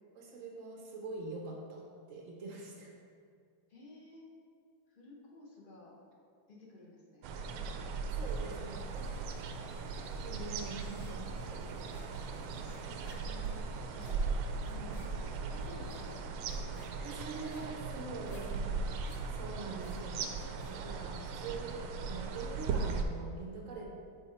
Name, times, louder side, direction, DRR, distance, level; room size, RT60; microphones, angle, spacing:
voice 1, 0.1-2.9 8.2-9.3 9.8-11.6 14.6-15.0 17.0-23.9, right 3 dB, 70° right, 0 dB, 0.7 m, -44 dB
voice 2, 3.7-4.3 4.9-5.9 6.5-7.8 12.5-14.2 15.0-15.1 15.4-16.8 17.4-17.8, left 2 dB, 75° left, -3 dB, 0.4 m, -55 dB
sound 1, 7.2-23.0, right 4 dB, 85° right, 1.4 m, -38 dB
sound 2, 8.3-16.3, equal, 20° left, 0.7 m, -57 dB
sound 3, 10.4-11.3 11.6-20.9, left 2 dB, 55° left, 1.5 m, -59 dB
7.1 x 4.5 x 4.3 m, 2.2 s
omnidirectional pair, 2.3 m